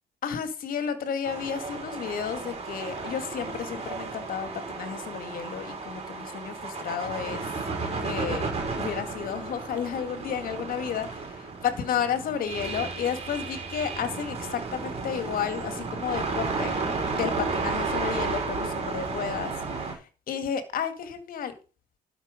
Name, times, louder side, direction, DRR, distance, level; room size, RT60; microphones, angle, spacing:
voice 1, 0.2-7.5 8.0-11.4 11.6-16.8 17.1-21.5, left 8 dB, 55° left, 9 dB, 2.2 m, -32 dB
sound 1, 1.2-19.9, right 4 dB, 40° right, 5.5 m, -33 dB
12.0 x 6.3 x 5.2 m, 0.35 s
cardioid pair, 110°, 17 cm